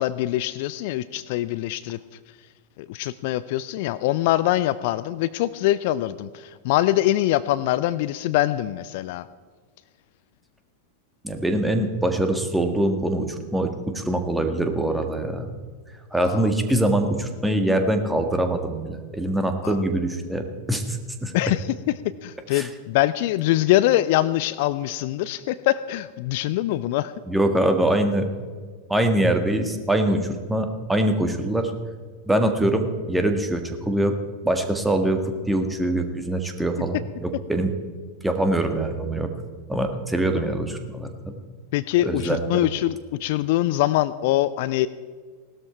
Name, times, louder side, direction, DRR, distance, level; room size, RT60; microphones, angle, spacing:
voice 1, 0.0-2.0 2.8-9.3 16.2-16.5 19.6-19.8 21.3-21.6 22.0-27.1 41.7-44.9, left 15 dB, 50° left, 16 dB, 0.4 m, -23 dB
voice 2, 11.2-15.5 16.1-21.3 22.5-22.7 27.3-28.3 28.9-31.7 32.2-34.1 34.4-35.2 35.5-37.7 38.2-39.3 39.7-41.3 42.0-42.6, right 1 dB, 5° right, 6 dB, 1.7 m, -23 dB
17.5 x 12.5 x 4.6 m, 1.5 s
figure-of-eight pair, 90°, 0 cm